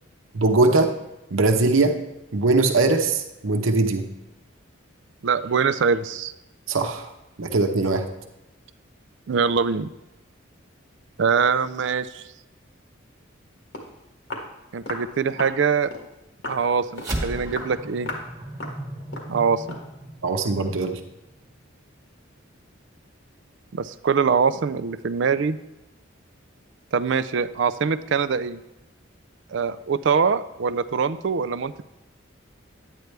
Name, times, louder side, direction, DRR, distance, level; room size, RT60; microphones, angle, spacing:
voice 1, 0.3-0.9 1.3-2.0 2.3-4.1 6.7-7.1 7.4-8.1 20.2-21.0, right 3 dB, 85° right, 4 dB, 0.9 m, -21 dB
voice 2, 5.2-6.3 9.3-9.9 11.2-12.2 14.7-15.9 16.5-18.1 19.3-19.8 23.7-25.6 26.9-28.6 29.5-31.8, right 5 dB, 65° right, 13 dB, 0.4 m, -23 dB
Walk footsteps, 13.4-13.5 13.7-13.9 14.3-14.5 14.9-15.1 15.4-15.6 15.9-16.1 16.4-16.6 17.0-17.2 17.5-17.7 18.1-18.3 18.6-18.8 19.1-19.3 19.7-19.9, left 2 dB, 70° left, 1.8 m, -35 dB
sound 1, 17.0-21.6, right 1 dB, 20° right, 1.1 m, -35 dB
10.5 x 9.2 x 3.3 m, 0.96 s
head